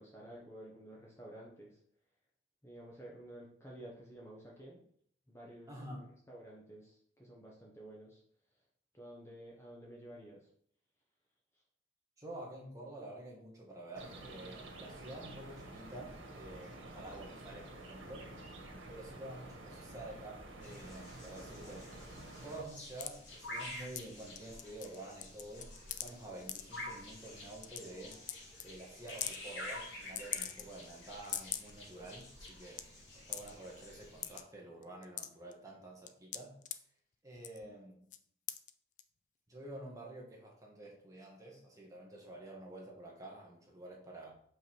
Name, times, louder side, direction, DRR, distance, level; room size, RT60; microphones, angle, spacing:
voice 1, 0.0-1.8 2.6-4.8 5.3-5.9 6.3-8.2 8.9-10.5 11.5-11.6, right 1 dB, 15° left, -3 dB, 1.1 m, -52 dB
voice 2, 5.7-6.1 12.2-18.4 18.9-21.9 22.4-25.7 26.0-28.2 28.6-32.8 33.1-36.6 37.2-38.1 39.5-44.3, right 1 dB, 15° right, -2 dB, 1.6 m, -49 dB
sound 1, 13.9-22.6, right 2 dB, 85° right, 1.7 m, -50 dB
sound 2, 20.6-34.4, left 1 dB, 65° left, 2.9 m, -49 dB
sound 3, 23.0-23.1 24.0-24.1 24.4-25.0 25.2-26.1 26.5-26.6 27.3-27.4 27.6-27.8 28.1-28.4 28.6-28.7 29.1-29.4 30.2-30.8 31.2-31.7 32.2-32.3 32.5-32.8 33.3-33.5 34.2-34.4 34.8-35.5 36.1-36.8 37.4-37.7 38.1-38.2 38.5-38.7 39.0-39.1, left 11 dB, 40° left, 0.4 m, -40 dB
6.0 x 5.4 x 4.6 m, 0.63 s
head